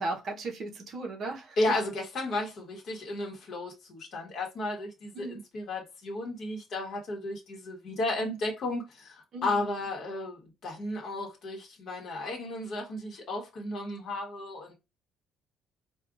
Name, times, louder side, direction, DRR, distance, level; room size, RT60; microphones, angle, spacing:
voice 1, 0.0-1.7 5.1-5.4 9.3-9.9, right 2 dB, 45° right, 0.9 m, -36 dB
voice 2, 1.6-5.3 5.5-14.7, left 2 dB, 45° left, 1.1 m, -33 dB
4.6 x 2.3 x 2.5 m
cardioid pair, 155°, 0 cm